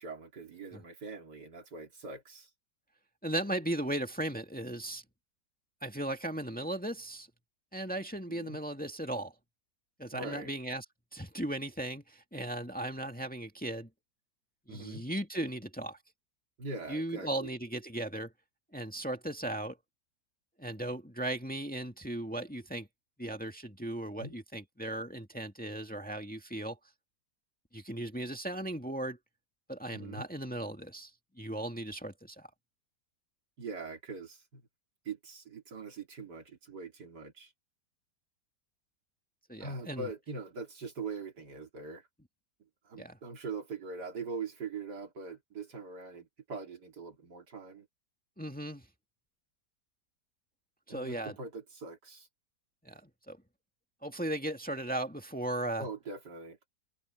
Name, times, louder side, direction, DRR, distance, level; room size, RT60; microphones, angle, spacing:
voice 1, 0.0-2.5 8.3-8.6 10.1-10.5 14.7-15.0 16.6-17.5 24.2-24.4 29.9-30.2 33.6-34.6 35.1-37.5 39.6-42.1 42.9-47.9 50.9-52.3 55.8-56.6, right 4 dB, 80° right, 3.5 m, -42 dB
voice 2, 3.2-5.0 5.8-7.3 7.7-9.3 10.0-10.8 11.1-13.9 14.7-16.0 16.9-18.3 18.7-19.8 20.6-22.9 23.2-26.8 27.7-29.2 29.7-31.1 31.4-32.5 39.5-40.1 43.0-43.2 48.4-48.9 50.9-51.4 52.8-53.4 54.0-55.9, right 1 dB, 5° left, 1.9 m, -37 dB
omnidirectional pair, 1.8 m